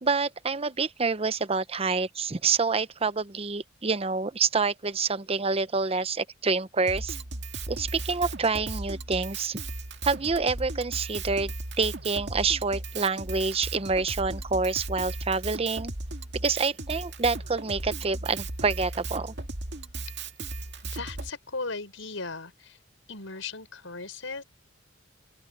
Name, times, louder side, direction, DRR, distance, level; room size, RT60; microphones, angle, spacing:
voice 1, 0.0-7.2 7.7-9.6 10.0-15.9 16.4-19.3, right 4 dB, 30° right, 0.8 m, -27 dB
Drum kit, 6.9-21.3, right 2 dB, 60° right, 2.1 m, -36 dB
voice 2, 20.8-22.8 23.1-24.4, left 3 dB, 85° left, 5.3 m, -37 dB
open air
head